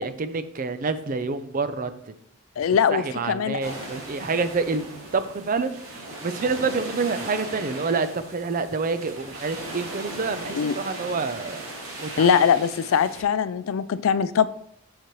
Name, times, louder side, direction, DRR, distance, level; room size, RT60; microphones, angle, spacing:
voice 1, 0.0-2.1 2.9-5.7 6.2-11.7 12.0-12.4, right 4 dB, 40° right, 0.5 m, -27 dB
voice 2, 2.6-3.7 10.5-10.7 12.2-14.5, left 7 dB, 70° left, 0.3 m, -22 dB
sound 1, 3.6-13.2, right 2 dB, 75° right, 2.0 m, -38 dB
7.4 x 6.7 x 3.0 m
head